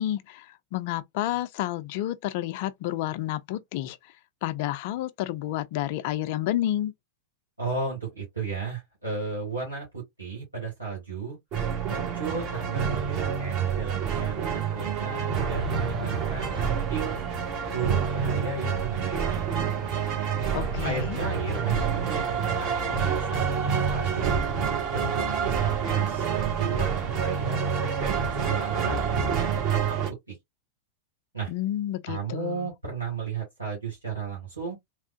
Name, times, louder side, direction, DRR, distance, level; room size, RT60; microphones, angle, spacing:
voice 1, 0.0-4.0 4.4-6.9 20.5-21.2 31.5-32.7, left 13 dB, 50° left, 0.3 m, -30 dB
voice 2, 7.6-11.4 11.9-17.2 17.7-19.5 20.8-24.4 24.9-27.6 28.0-29.0 29.3-29.8 30.1-30.3 31.3-31.5 32.1-34.8, right 5 dB, 85° right, 1.6 m, -34 dB
sound 1, 11.5-30.1, right 7 dB, 40° right, 1.4 m, -28 dB
sound 2, 15.5-28.6, equal, 10° right, 1.3 m, -42 dB
3.4 x 2.4 x 2.3 m
figure-of-eight pair, 90°, 0 cm